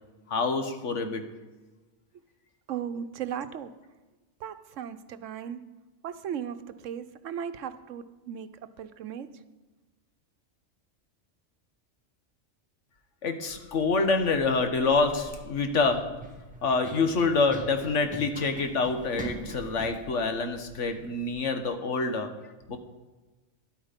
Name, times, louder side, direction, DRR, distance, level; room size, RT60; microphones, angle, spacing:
voice 1, 0.3-1.3 13.2-16.2 16.6-22.4, left 4 dB, 75° left, 7 dB, 1.5 m, -26 dB
voice 2, 2.7-3.7 4.4-5.6 6.0-9.3, right 8 dB, 90° right, 12 dB, 1.1 m, -37 dB
Run, 13.5-21.4, right 2 dB, 5° right, 1.6 m, -44 dB
13.0 x 12.0 x 5.2 m, 1.2 s
omnidirectional pair, 1.3 m